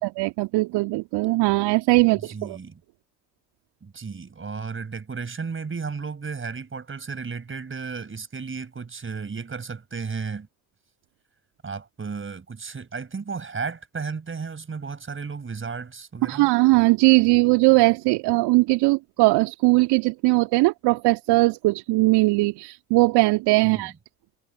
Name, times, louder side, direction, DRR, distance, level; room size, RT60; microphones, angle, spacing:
voice 1, 0.0-2.6 16.3-23.9, right 22 dB, 55° right, 2.7 m, -20 dB
voice 2, 2.1-2.8 3.8-10.5 11.6-16.5 23.6-23.9, right 5 dB, 25° right, 5.3 m, -34 dB
figure-of-eight pair, 55°, 47 cm